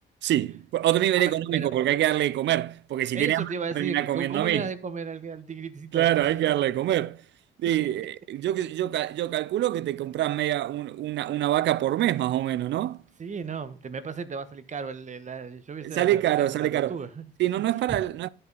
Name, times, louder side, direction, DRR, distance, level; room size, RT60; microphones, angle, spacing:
voice 1, 0.2-3.5 3.8-4.7 5.9-7.2 7.6-13.0 15.8-17.0 17.4-18.3, right 13 dB, 65° right, 0.4 m, -25 dB
voice 2, 3.1-6.3 13.2-17.3 17.9-18.0, right 5 dB, 40° right, 1.0 m, -35 dB
12.0 x 5.6 x 3.9 m
cardioid pair, 90°, 20 cm